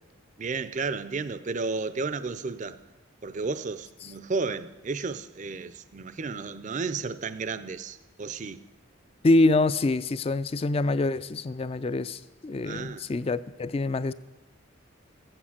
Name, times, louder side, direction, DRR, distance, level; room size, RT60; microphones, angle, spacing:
voice 1, 0.4-2.8 3.2-8.6 12.6-13.1, right 4 dB, 35° right, 0.4 m, -33 dB
voice 2, 9.2-14.1, left 2 dB, 30° left, 0.3 m, -25 dB
14.0 x 8.8 x 7.2 m
head